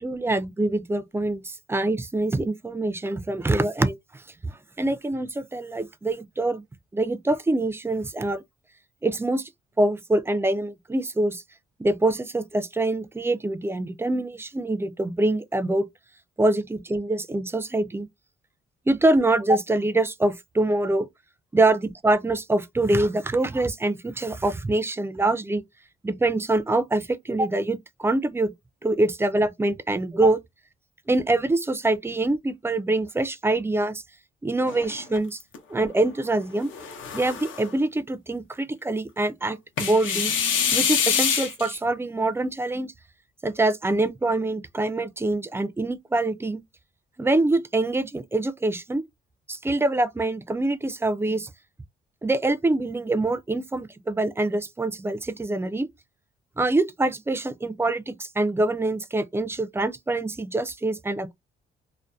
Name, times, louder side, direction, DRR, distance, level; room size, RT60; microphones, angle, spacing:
voice 1, 0.0-4.0 4.8-6.6 6.9-8.4 9.0-9.5 9.8-11.4 11.8-15.9 16.4-18.1 18.9-21.1 21.5-25.6 26.0-28.5 28.8-30.4 31.1-34.0 34.4-35.4 35.7-36.7 37.1-40.3 40.7-42.9 43.4-46.6 47.2-49.0 49.5-51.5 52.2-55.9 56.6-61.3, right 2 dB, 10° right, 0.3 m, -24 dB
sound 1, 34.7-35.6 36.6-37.7 39.8-41.8, left 7 dB, 75° left, 0.7 m, -25 dB
2.6 x 2.1 x 2.3 m
cardioid pair, 90°, 20 cm